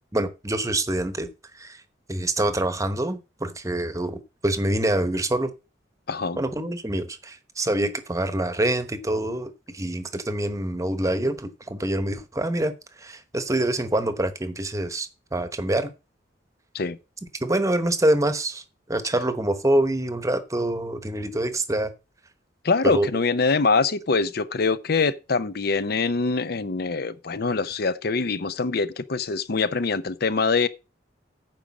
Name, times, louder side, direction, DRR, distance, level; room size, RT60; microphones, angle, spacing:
voice 1, 0.1-1.3 1.5-1.8 2.1-5.5 6.3-12.7 13.0-15.9 17.4-18.6 18.9-21.9 22.8-23.1, right 1 dB, 20° right, 1.0 m, -25 dB
voice 2, 6.1-6.4 16.7-17.0 22.6-30.7, left 4 dB, 60° left, 0.7 m, -24 dB
9.4 x 5.0 x 7.2 m
head